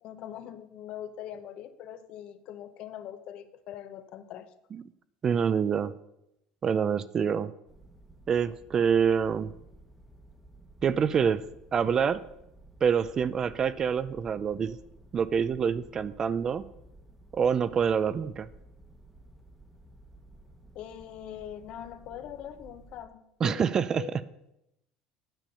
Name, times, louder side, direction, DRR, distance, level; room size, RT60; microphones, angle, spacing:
voice 1, 0.0-4.5 20.7-24.1, left 10 dB, 55° left, 11 dB, 0.8 m, -42 dB
voice 2, 5.2-6.0 6.6-7.5 8.3-9.5 10.8-11.4 11.7-12.2 12.8-14.8 15.1-16.6 17.3-18.5 23.4-24.2, right 7 dB, 30° right, 16 dB, 0.4 m, -26 dB
sound 1, 7.7-23.1, right 1 dB, 5° right, 1.1 m, -54 dB
9.1 x 7.0 x 5.6 m, 0.84 s
cardioid pair, 140°, 2 cm